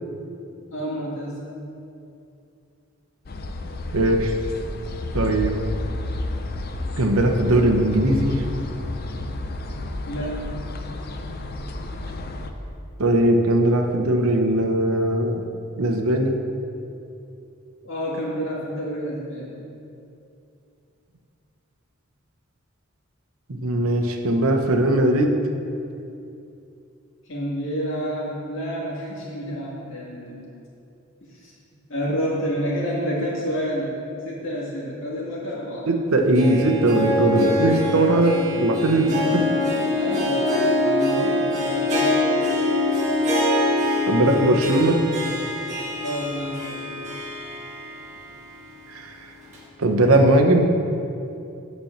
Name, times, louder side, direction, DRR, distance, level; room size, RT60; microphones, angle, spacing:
voice 1, 0.7-1.4 10.0-10.5 17.8-19.5 27.2-30.5 31.3-34.0 34.2-35.9 39.9-40.5 40.7-42.3 46.0-47.1, equal, 65° left, -5 dB, 2.1 m, -29 dB
sound 1, 3.3-12.5, left 2 dB, 45° left, 0.5 m, -31 dB
voice 2, 3.9-4.3 5.1-5.6 7.0-8.4 13.0-15.4 15.8-16.4 23.5-25.4 35.9-39.4 44.1-45.0 48.9-49.2 49.8-50.7, right 1 dB, 90° right, 3 dB, 0.9 m, -19 dB
Harp, 36.1-48.2 48.6-48.7 49.5-49.6, left 2 dB, 35° right, 1.6 m, -24 dB
8.6 x 4.3 x 7.2 m, 2.7 s
head